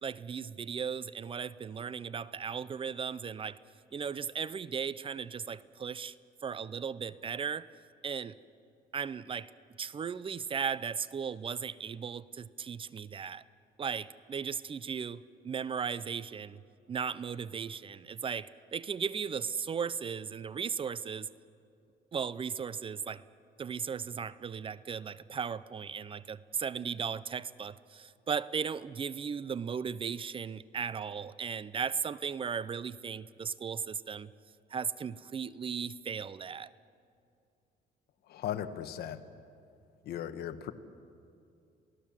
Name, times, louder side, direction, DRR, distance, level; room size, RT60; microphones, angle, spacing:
voice 1, 0.0-3.6 3.9-6.1 6.4-7.7 8.0-8.3 8.9-9.5 9.8-13.4 13.8-16.6 16.9-21.3 22.1-23.2 23.6-34.3 34.7-36.7, right 6 dB, 30° right, 18 dB, 0.6 m, -36 dB
voice 2, 38.3-39.2 40.0-40.7, left 10 dB, 70° left, 10 dB, 1.4 m, -37 dB
28.0 x 18.0 x 7.5 m, 2.5 s
cardioid pair, 110°, 17 cm